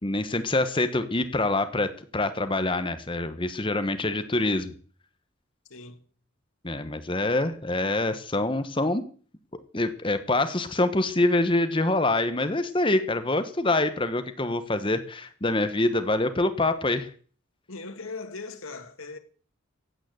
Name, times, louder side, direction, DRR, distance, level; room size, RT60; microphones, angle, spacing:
voice 1, 0.0-4.7 6.6-9.0 9.7-17.1, left 2 dB, 25° left, 1.2 m, -25 dB
voice 2, 5.7-6.1 17.7-19.2, left 3 dB, 85° left, 2.4 m, -39 dB
15.5 x 9.4 x 7.9 m
head